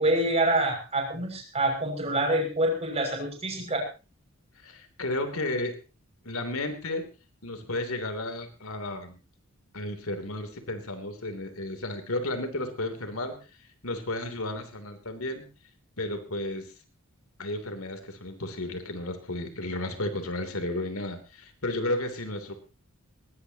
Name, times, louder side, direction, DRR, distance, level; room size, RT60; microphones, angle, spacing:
voice 1, 0.0-3.8, right 1 dB, 30° right, 2 dB, 6.5 m, -26 dB
voice 2, 4.6-5.7 6.2-7.0 7.4-9.2 9.7-15.4 16.0-16.7 17.4-22.5, left 1 dB, 85° left, 6 dB, 3.2 m, -33 dB
20.5 x 18.0 x 2.9 m, 0.33 s
head